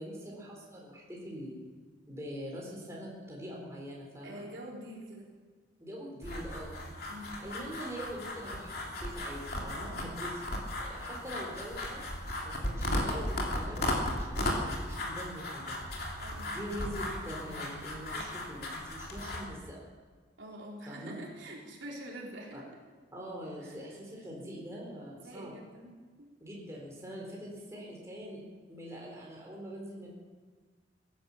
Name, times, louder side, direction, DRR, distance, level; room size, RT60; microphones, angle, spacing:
voice 1, 0.0-1.6 2.1-4.4 5.8-6.8 7.4-10.4 10.8-12.0 12.4-15.8 16.5-19.9 20.9-21.2 22.5-22.6 23.1-25.5 26.4-28.4 28.7-30.1, equal, 15° right, -3 dB, 4.0 m, -43 dB
voice 2, 4.2-5.3 7.1-7.4 16.2-16.5 20.4-22.6 23.6-23.9 25.1-25.9 26.2-26.3, right 1 dB, 80° right, -2 dB, 3.8 m, -45 dB
sound 1, 6.2-19.4, left 1 dB, 55° left, 3.1 m, -36 dB
16.5 x 11.5 x 7.2 m, 1.5 s
head